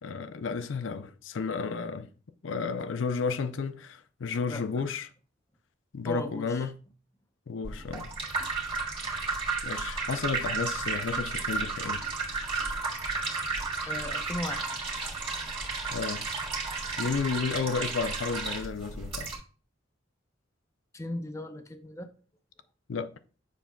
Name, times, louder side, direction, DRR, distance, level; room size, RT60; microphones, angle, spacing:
voice 1, 0.0-2.1 2.4-5.1 5.9-6.8 7.5-8.1 9.6-12.1 15.9-16.2 17.0-19.3 22.9-23.1, left 5 dB, 80° left, 0.5 m, -32 dB
voice 2, 4.5-4.8 6.0-6.7 13.9-14.7 20.9-22.1, left 1 dB, 15° left, 0.6 m, -37 dB
sound 1, 7.6-19.4, right 4 dB, 30° right, 1.6 m, -33 dB
7.2 x 5.8 x 2.3 m
head